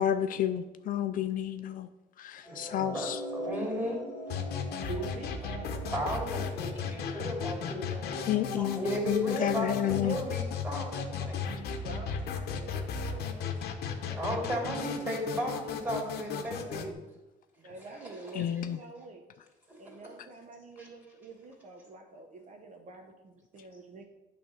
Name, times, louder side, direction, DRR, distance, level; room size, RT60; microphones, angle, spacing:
voice 1, 0.0-1.9 2.2-3.2 7.0-7.2 8.3-10.2 18.3-18.8, left 10 dB, 55° left, 0.4 m, -30 dB
sound 1, 2.4-8.7, equal, 20° left, 2.1 m, -43 dB
voice 2, 2.4-3.1 3.3-4.0 5.9-11.5 12.5-17.0 17.9-18.1 20.8-20.9, equal, 10° right, 3.0 m, -36 dB
sound 2, 4.3-16.9, left 6 dB, 70° left, 0.9 m, -36 dB
voice 3, 4.9-8.7 11.6-13.4 14.2-15.7 17.6-19.3 19.8-24.0, right 4 dB, 45° right, 0.8 m, -47 dB
8.8 x 3.4 x 6.3 m
cardioid pair, 110°, 17 cm